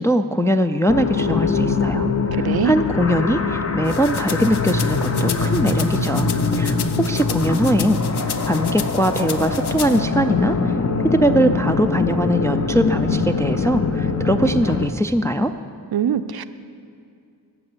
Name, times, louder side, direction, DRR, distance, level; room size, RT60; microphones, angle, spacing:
voice 1, 0.0-10.7 11.0-15.5, equal, 10° left, 7 dB, 0.3 m, -21 dB
sound 1, 0.9-14.9, left 4 dB, 40° left, 0.8 m, -22 dB
voice 2, 2.3-2.7 15.9-16.4, right 9 dB, 65° right, 12 dB, 0.5 m, -22 dB
sound 2, 3.9-10.0, left 7 dB, 70° left, 0.7 m, -33 dB
13.0 x 6.8 x 8.0 m, 2.5 s
wide cardioid pair, 115°, 41 cm